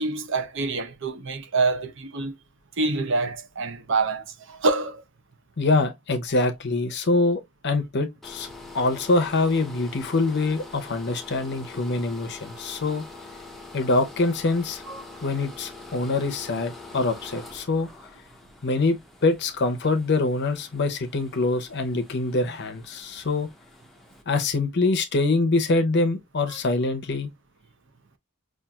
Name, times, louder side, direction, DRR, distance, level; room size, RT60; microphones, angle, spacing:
voice 1, 0.0-2.3 2.8-5.0 14.9-15.2 26.5-26.6, right 3 dB, 55° right, 0.7 m, -26 dB
voice 2, 5.6-8.5 8.7-13.0 13.7-14.8 15.2-17.9 18.6-23.5 24.3-27.3, left 3 dB, 50° left, 0.7 m, -24 dB
sound 1, 8.2-24.2, left 3 dB, ahead, 0.6 m, -44 dB
5.6 x 2.5 x 2.3 m
head